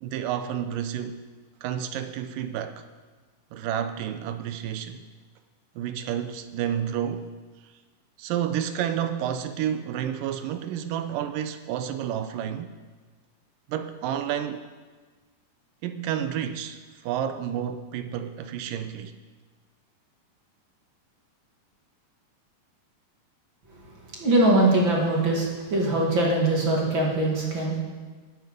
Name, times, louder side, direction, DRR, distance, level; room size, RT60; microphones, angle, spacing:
voice 1, 0.0-1.2 1.6-2.9 3.5-5.1 5.8-7.3 8.2-12.7 13.7-14.7 15.8-19.1, right 9 dB, 75° right, 2.1 m, -30 dB
voice 2, 24.2-27.8, right 2 dB, 40° right, 2.3 m, -22 dB
20.0 x 7.6 x 5.2 m
omnidirectional pair, 4.2 m